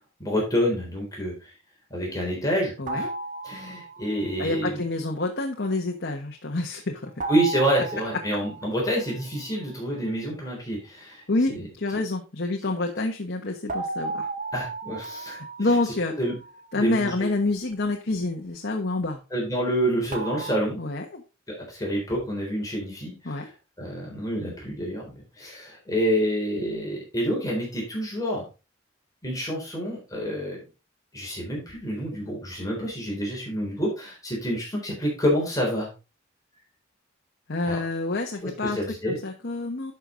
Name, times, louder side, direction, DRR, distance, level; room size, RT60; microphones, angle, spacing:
voice 1, 0.2-1.5 1.9-3.1 3.4-4.8 7.3-11.2 11.5-11.7 14.5-15.7 16.2-16.3 16.8-17.3 19.3-20.8 21.5-23.5 23.8-28.5 29.2-30.6 31.1-35.9 37.7-37.8 38.4-39.2, equal, 20° left, -2 dB, 3.8 m, -28 dB
voice 2, 2.8-3.1 4.4-7.1 11.3-14.3 15.3-16.1 16.7-19.2 20.8-21.2 23.2-23.5 37.5-38.8 39.1-39.9, left 2 dB, 55° left, 2 dB, 1.2 m, -28 dB
sound 1, 2.9-4.4 7.2-9.6 13.7-16.8 20.1-20.6, right 3 dB, 40° right, 1.5 m, -35 dB
11.0 x 5.9 x 3.9 m, 0.30 s
head